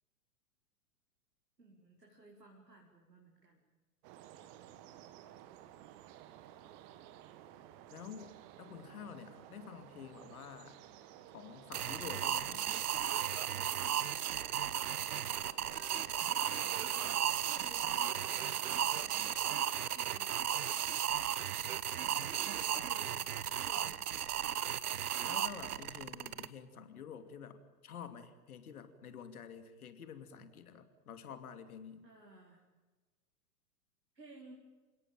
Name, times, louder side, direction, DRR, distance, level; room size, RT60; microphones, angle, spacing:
voice 1, 1.6-3.6 15.7-16.1 16.5-17.1 17.4-18.8 19.2-19.6 19.9-20.5 22.1-24.2 32.0-32.6 34.1-34.5, right 2 dB, 90° right, -2 dB, 4.9 m, -57 dB
sound 1, 4.0-19.4, right 12 dB, 35° right, 1.9 m, -54 dB
voice 2, 7.9-8.3 8.6-10.8 11.3-12.7 25.2-32.0, left 7 dB, 60° left, 9 dB, 2.8 m, -49 dB
sound 2, 11.7-26.5, right 10 dB, 65° right, 1.2 m, -35 dB
29.0 x 17.5 x 9.0 m, 1.3 s
figure-of-eight pair, 105°, 48 cm